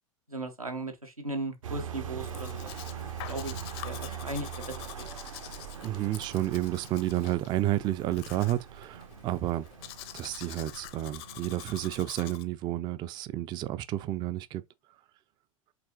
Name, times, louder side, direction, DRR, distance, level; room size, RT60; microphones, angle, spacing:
voice 1, 0.3-2.7 3.3-3.6 3.8-5.1, right 2 dB, 90° right, 1.0 m, -37 dB
sound 1, 1.6-12.0, right 8 dB, 70° right, 0.8 m, -42 dB
Domestic sounds home sounds, 2.2-12.4, left 14 dB, 45° left, 0.6 m, -46 dB
voice 2, 5.8-9.7 10.1-14.6, right 14 dB, 25° right, 0.3 m, -31 dB
5.0 x 3.6 x 2.9 m
figure-of-eight pair, 85°, 18 cm